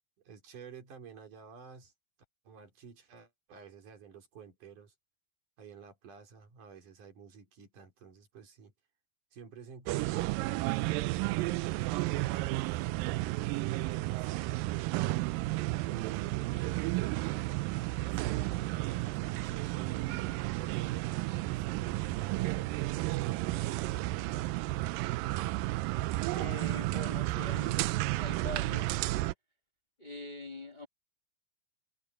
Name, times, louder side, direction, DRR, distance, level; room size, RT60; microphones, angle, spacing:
voice 1, 0.3-1.9 2.5-4.9 5.6-8.7 9.3-14.9 15.8-16.7 18.1-24.9, right 6 dB, 65° right, 5.2 m, -51 dB
sound 1, 9.9-29.3, right 19 dB, 85° right, 2.3 m, -32 dB
voice 2, 26.3-27.9 28.1-29.0 30.0-30.9, left 2 dB, 55° left, 0.4 m, -43 dB
omnidirectional pair, 3.9 m